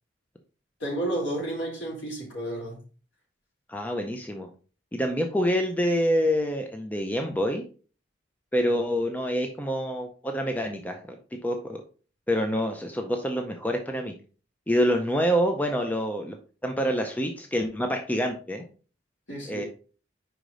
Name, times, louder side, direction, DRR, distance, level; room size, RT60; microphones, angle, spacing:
voice 1, 0.8-2.8 19.3-19.6, right 1 dB, 70° left, 3.0 m, -31 dB
voice 2, 3.7-4.5 4.9-7.6 8.5-11.8 12.3-14.1 14.7-16.4 16.6-18.6 19.5-19.7, equal, 10° left, 0.5 m, -26 dB
5.1 x 4.9 x 3.8 m
head